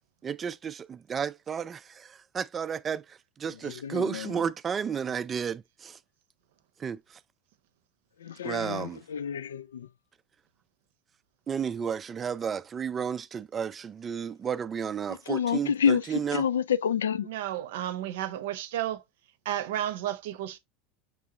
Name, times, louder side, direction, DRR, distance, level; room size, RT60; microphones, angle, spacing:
voice 1, 0.2-6.0 6.8-7.2 8.4-9.0 11.5-16.4, right 7 dB, 25° right, 0.3 m, -32 dB
voice 2, 3.8-4.3 8.2-9.9 15.3-16.0 16.3-17.3, left 7 dB, 75° left, 0.3 m, -28 dB
voice 3, 17.2-19.0 19.4-20.6, right 12 dB, 65° right, 0.7 m, -32 dB
6.2 x 3.6 x 2.3 m
figure-of-eight pair, 80°, 0 cm